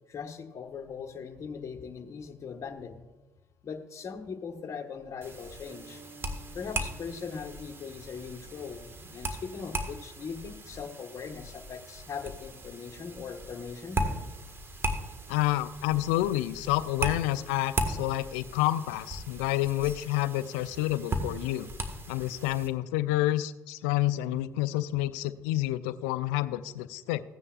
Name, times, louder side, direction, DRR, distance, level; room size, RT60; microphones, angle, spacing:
voice 1, 0.1-3.0 3.6-6.0 6.5-14.0, left 6 dB, 40° left, 4 dB, 1.3 m, -40 dB
sound 1, 5.2-22.7, right 1 dB, 35° right, 1.6 m, -37 dB
sound 2, 5.7-9.6, right 2 dB, 55° right, 3.2 m, -55 dB
voice 2, 15.3-21.7 22.1-27.2, left 15 dB, 80° left, 15 dB, 0.4 m, -29 dB
15.5 x 9.7 x 2.4 m, 1.2 s
hypercardioid pair, 55°, 7 cm